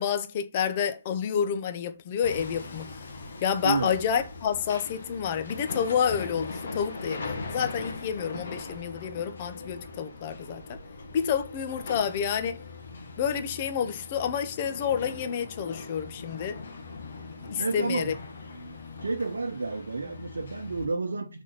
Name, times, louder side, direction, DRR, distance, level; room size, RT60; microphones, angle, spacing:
voice 1, 0.0-2.9 3.4-10.8 11.1-12.6 13.2-16.6 17.5-18.2, left 7 dB, 35° left, 0.8 m, -29 dB
Hammer, 2.2-20.9, left 3 dB, 55° left, 1.5 m, -40 dB
voice 2, 3.6-3.9 17.6-18.2 19.0-21.4, right 3 dB, 70° right, 0.8 m, -30 dB
6.2 x 3.6 x 5.8 m
figure-of-eight pair, 135°, 0 cm